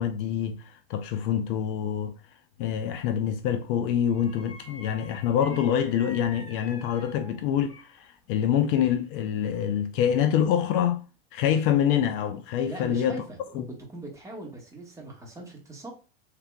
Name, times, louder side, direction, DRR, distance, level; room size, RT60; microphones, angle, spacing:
voice 1, 0.0-2.2 2.6-11.0 11.3-13.2 13.5-13.7, left 9 dB, 60° left, 0.5 m, -26 dB
sound 1, 2.9-3.2 4.1-8.1 8.4-9.4 9.8-10.0, left 1 dB, 20° left, 1.9 m, -48 dB
voice 2, 12.6-13.6 13.9-15.9, right 2 dB, 10° right, 1.6 m, -41 dB
3.4 x 3.3 x 2.3 m
hypercardioid pair, 100°, 32 cm